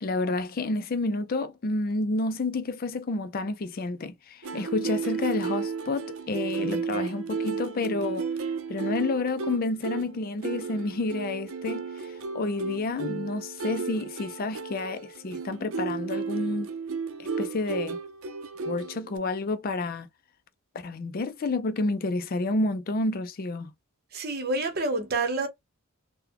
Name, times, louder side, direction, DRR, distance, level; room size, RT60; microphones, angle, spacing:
voice 1, 0.0-8.3 8.7-16.7 17.2-18.0 18.7-20.1 20.8-23.7, left 2 dB, 45° left, 0.4 m, -30 dB
sound 1, 4.4-19.2, right 5 dB, 70° right, 0.5 m, -33 dB
voice 2, 24.1-25.5, right 2 dB, 45° right, 0.9 m, -28 dB
3.8 x 2.2 x 2.8 m
head